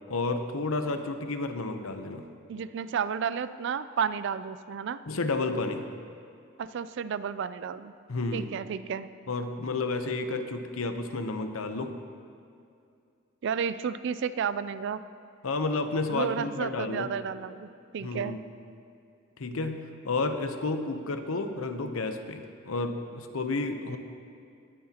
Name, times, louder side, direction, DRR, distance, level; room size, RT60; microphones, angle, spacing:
voice 1, 0.1-2.3 5.1-5.9 8.1-8.5 9.3-12.0 15.4-17.2 18.0-18.5 19.4-24.0, left 3 dB, 85° left, 7 dB, 0.8 m, -31 dB
voice 2, 2.5-5.0 6.6-7.9 8.3-9.1 13.4-15.0 16.1-18.4, right 7 dB, 60° right, 14 dB, 0.3 m, -32 dB
19.0 x 9.6 x 2.9 m, 2.4 s
head